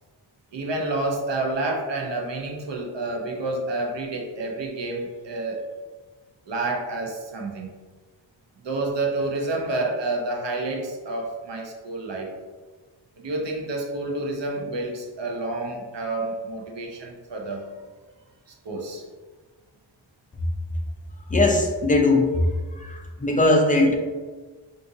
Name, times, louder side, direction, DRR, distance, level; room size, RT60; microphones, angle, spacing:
voice 1, 0.5-5.6 6.5-7.7 8.6-12.3 13.2-17.6 18.6-19.0, right 2 dB, 65° right, 0 dB, 0.7 m, -29 dB
voice 2, 21.3-22.4 22.8-23.9, left 2 dB, 20° left, 1 dB, 0.4 m, -20 dB
3.6 x 2.6 x 2.6 m, 1.4 s
wide cardioid pair, 90°, 48 cm